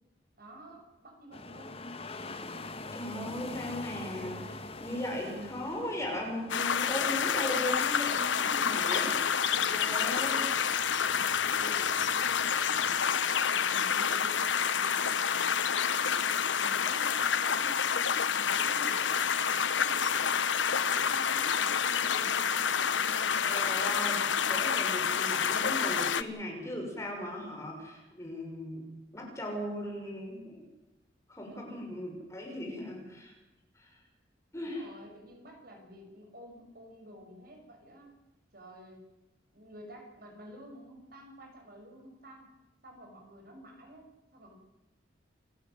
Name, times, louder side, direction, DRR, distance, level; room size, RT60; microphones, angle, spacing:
voice 1, 0.4-1.9 8.6-9.3 9.6-12.9 13.2-20.3 20.7-23.4 31.5-31.9 34.5-38.2 38.5-39.0 39.5-42.5 42.8-44.5, equal, 55° right, 2 dB, 6.7 m, -50 dB
sound 1, 1.3-13.2, left 2 dB, 30° left, 1.5 m, -45 dB
voice 2, 2.9-9.1 9.7-10.5 23.4-28.9 29.1-30.7 31.3-33.3 33.7-33.9 34.5-34.8, left 1 dB, 15° left, 0 dB, 6.3 m, -38 dB
sound 2, 6.5-26.2, left 7 dB, 85° left, 1.0 m, -28 dB
29.0 x 14.5 x 7.8 m, 1.0 s
head